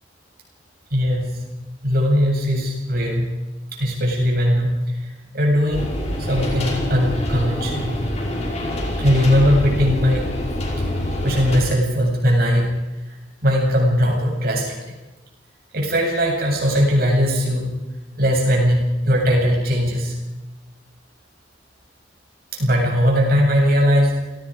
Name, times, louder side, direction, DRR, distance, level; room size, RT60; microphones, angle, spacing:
voice 1, 0.9-1.5 1.8-3.4 3.7-5.0 5.3-5.9 6.2-8.0 9.0-10.4 11.2-12.8 13.1-13.2 13.4-14.8 15.7-17.8 18.2-20.2 22.5-24.2, equal, 55° right, 0 dB, 7.8 m, -19 dB
sound 1, 5.7-11.6, left 1 dB, 35° left, 5.3 m, -25 dB
29.5 x 18.5 x 5.2 m, 1.1 s
head